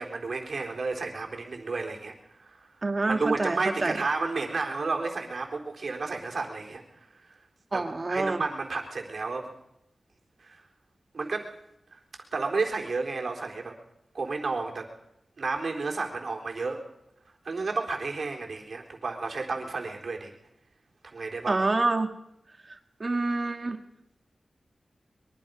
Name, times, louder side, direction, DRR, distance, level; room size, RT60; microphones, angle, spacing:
voice 1, 0.0-2.1 2.4-2.6 3.1-6.8 7.7-9.5 10.4-10.6 11.1-11.5 11.9-12.0 12.3-13.8 14.1-14.9 15.4-16.8 17.4-20.3 21.1-21.6, right 3 dB, 60° right, 2 dB, 3.8 m, -31 dB
voice 2, 2.8-4.0 7.7-8.4 21.5-22.2 22.7-23.8, right 3 dB, 35° right, 6 dB, 1.9 m, -27 dB
23.5 x 22.5 x 5.3 m, 0.81 s
wide cardioid pair, 120°, 0 cm